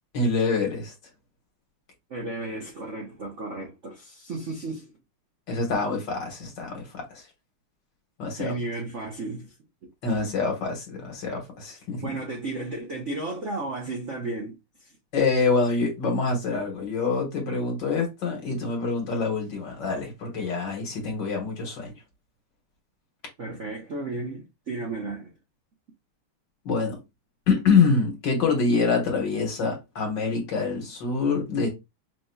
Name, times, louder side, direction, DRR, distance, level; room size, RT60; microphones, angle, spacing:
voice 1, 0.1-0.9 5.5-7.3 8.2-8.5 10.0-12.0 15.1-21.9 26.6-27.0 27.5-31.7, left 4 dB, 55° left, 2.0 m, -25 dB
voice 2, 2.1-4.9 8.4-9.5 12.0-14.6 23.4-25.3, right 2 dB, 55° right, 0.8 m, -33 dB
5.9 x 2.9 x 2.3 m
omnidirectional pair, 2.4 m